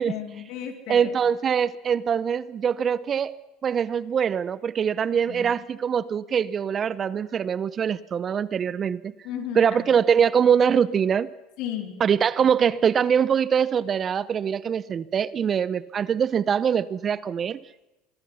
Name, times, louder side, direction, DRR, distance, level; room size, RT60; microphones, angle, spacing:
voice 1, 0.1-1.2 5.3-5.6 9.2-9.7 11.6-12.0, left 10 dB, 65° left, 4.3 m, -34 dB
voice 2, 0.9-3.4 3.6-9.1 9.5-11.3 12.0-17.6, right 7 dB, 35° right, 0.9 m, -23 dB
25.5 x 22.5 x 5.8 m
supercardioid pair, 95°, 0 cm